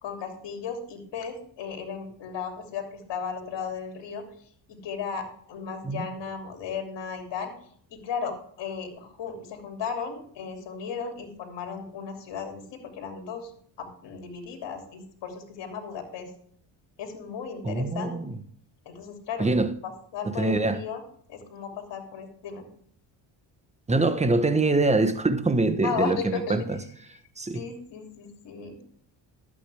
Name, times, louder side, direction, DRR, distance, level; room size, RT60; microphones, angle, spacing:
voice 1, 0.0-7.5 7.9-13.5 13.8-16.3 17.0-18.2 18.8-21.0 21.3-22.6 25.8-26.7 27.5-28.8, left 6 dB, 65° left, 3.0 m, -35 dB
voice 2, 17.6-18.4 19.4-19.7 20.2-20.8 23.9-26.8 27.4-27.6, right 2 dB, 15° right, 1.2 m, -24 dB
12.0 x 8.7 x 3.5 m
supercardioid pair, 75°, 45 cm